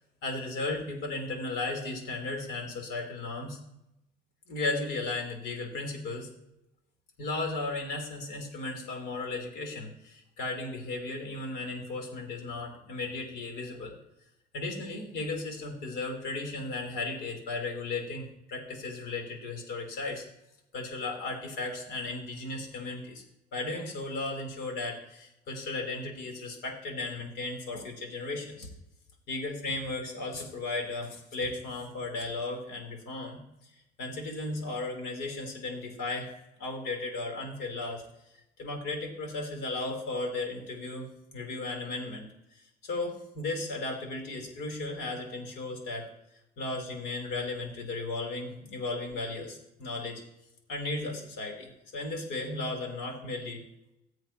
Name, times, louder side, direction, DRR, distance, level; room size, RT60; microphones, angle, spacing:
voice 1, 0.2-3.6 4.5-6.3 7.2-14.0 14.5-20.2 20.7-23.2 23.5-28.7 29.3-33.4 34.0-36.3 36.6-38.0 38.6-41.1 41.3-42.3 42.5-46.1 46.6-50.2 50.7-53.6, left 2 dB, 85° left, 2 dB, 3.8 m, -35 dB
20.5 x 7.8 x 3.0 m, 0.84 s
cardioid pair, 110°, 17 cm